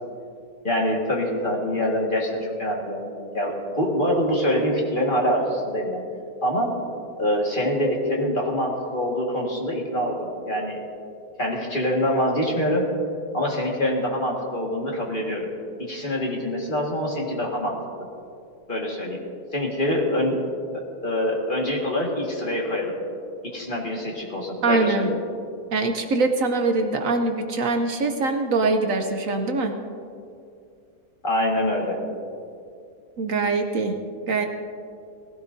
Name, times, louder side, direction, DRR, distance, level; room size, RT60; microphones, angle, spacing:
voice 1, 0.6-6.0 6.4-6.8 7.2-10.8 11.4-12.9 13.3-15.5 15.8-17.8 18.7-19.2 19.5-20.4 20.7-22.9 23.4-25.1 31.2-32.0, equal, 35° left, -2 dB, 1.9 m, -25 dB
voice 2, 24.6-25.1 25.7-29.7 33.2-34.0 34.3-34.5, right 3 dB, 65° right, 5 dB, 1.1 m, -23 dB
18.5 x 16.0 x 2.7 m, 2.4 s
omnidirectional pair, 1.6 m